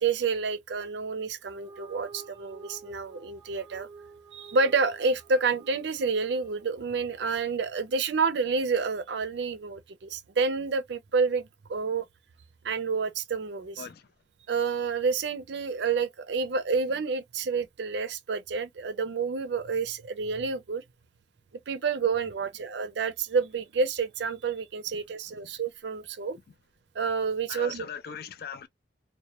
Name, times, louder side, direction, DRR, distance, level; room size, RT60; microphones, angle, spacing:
voice 1, 0.0-3.9 4.3-12.1 12.6-13.8 14.5-20.8 21.7-26.4 26.9-27.9, right 4 dB, 70° right, 0.4 m, -29 dB
sound 1, 1.4-8.0, right 4 dB, 20° right, 0.6 m, -51 dB
voice 2, 13.8-14.1 24.9-25.0 25.3-25.4 27.5-28.7, left 7 dB, 55° left, 0.3 m, -40 dB
2.2 x 2.0 x 2.8 m
head